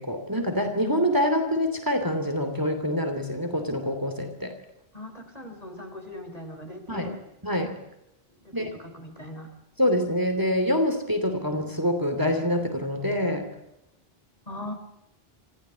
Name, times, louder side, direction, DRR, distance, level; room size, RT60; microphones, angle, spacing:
voice 1, 0.0-4.5 6.9-7.1 7.4-7.8 8.5-8.7 9.8-13.5, equal, 20° right, 6 dB, 3.0 m, -26 dB
voice 2, 4.9-7.2 8.3-9.5 14.5-14.7, left 1 dB, 35° left, 5 dB, 4.1 m, -40 dB
26.5 x 15.0 x 8.2 m, 0.89 s
omnidirectional pair, 1.1 m